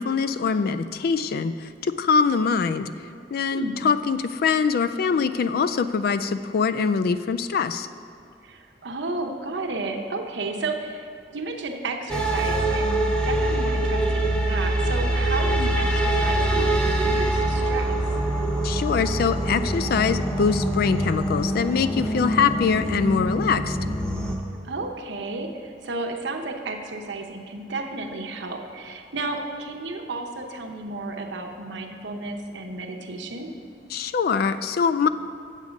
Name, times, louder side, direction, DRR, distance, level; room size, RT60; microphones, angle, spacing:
voice 1, 0.0-1.5 2.0-2.9 3.3-7.9 18.6-23.8 33.9-35.1, left 5 dB, 60° left, 12 dB, 0.3 m, -23 dB
voice 2, 8.4-11.0 11.3-18.0 24.6-33.5, right 3 dB, 85° right, 3 dB, 0.8 m, -32 dB
sound 1, 12.1-24.4, right 1 dB, 5° left, 0.8 m, -24 dB
7.4 x 7.4 x 5.1 m, 2.3 s
head